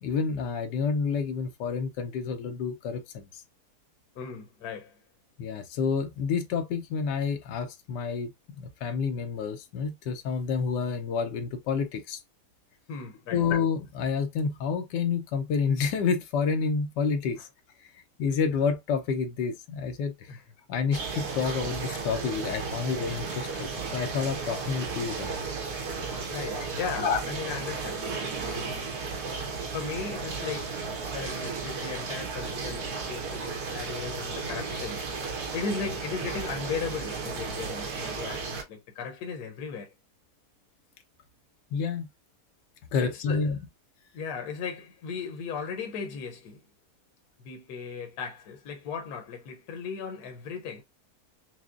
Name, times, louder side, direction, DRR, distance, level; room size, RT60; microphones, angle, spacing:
voice 1, 0.0-3.4 5.4-8.3 8.6-12.2 13.3-17.5 17.8-17.9 18.2-20.3 20.7-25.3 26.5-26.7 27.0-27.2 41.7-42.1 42.9-43.6, left 5 dB, 90° left, 1.3 m, -29 dB
voice 2, 4.1-5.0 12.9-13.4 17.4-17.5 20.3-20.4 26.3-28.1 28.4-28.9 29.7-30.9 31.1-39.9 43.0-43.5 44.1-46.6 47.4-50.8, left 5 dB, 70° left, 1.3 m, -37 dB
sound 1, 20.9-38.6, right 4 dB, 70° right, 1.4 m, -34 dB
6.0 x 2.0 x 2.4 m
omnidirectional pair, 1.8 m